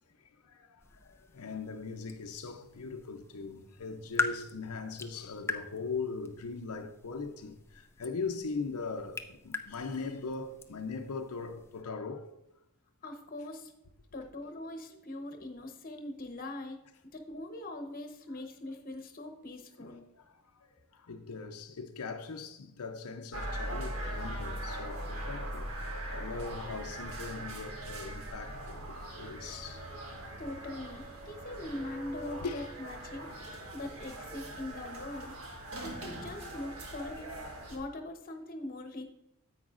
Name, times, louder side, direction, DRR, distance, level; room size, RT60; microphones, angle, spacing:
sound 1, 0.8-11.8, left 3 dB, 10° left, 0.4 m, -42 dB
voice 1, 1.0-12.3 18.4-18.5 19.8-19.9 20.2-20.3 21.1-29.8 32.4-32.7, left 4 dB, 85° left, 0.7 m, -40 dB
voice 2, 13.0-13.7 14.1-16.8 17.1-20.0 30.4-33.3 33.7-35.4 35.8-39.0, left 1 dB, 40° left, 1.0 m, -42 dB
sound 2, 23.3-37.8, right 1 dB, 70° right, 1.5 m, -41 dB
10.0 x 8.1 x 2.5 m
head